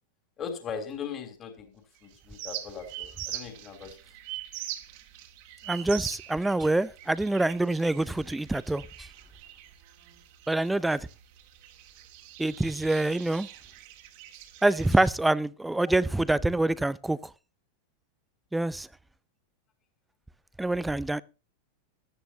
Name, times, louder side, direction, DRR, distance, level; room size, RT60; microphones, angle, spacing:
voice 1, 0.4-4.0, left 6 dB, 30° left, 3.2 m, -39 dB
sound 1, 2.0-15.1, right 14 dB, 50° right, 1.9 m, -43 dB
voice 2, 5.7-9.1 10.5-11.1 12.4-13.5 14.6-17.2 18.5-18.9 20.6-21.2, right 2 dB, 5° right, 0.5 m, -26 dB
16.0 x 13.0 x 2.8 m
figure-of-eight pair, 90°, 0 cm